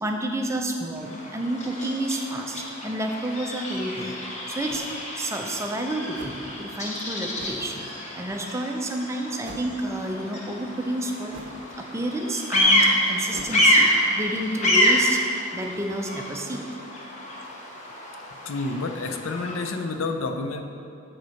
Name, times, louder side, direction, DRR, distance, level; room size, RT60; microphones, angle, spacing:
voice 1, 0.0-4.2 4.5-4.8 5.1-7.9 8.1-11.3 11.8-15.2 15.5-16.6, right 1 dB, 15° right, 2 dB, 0.5 m, -30 dB
Bird vocalization bird call bird song, 1.0-19.7, equal, 35° left, 1.0 m, -27 dB
sound 1, 3.7-3.8 4.7-4.9 6.1-6.5 7.3-7.7 9.4-9.8 11.3-11.7 13.3-13.6, right 2 dB, 60° right, 0.7 m, -42 dB
voice 2, 18.4-20.6, left 3 dB, 70° left, 6 dB, 0.5 m, -29 dB
6.7 x 4.3 x 6.3 m, 2.6 s
head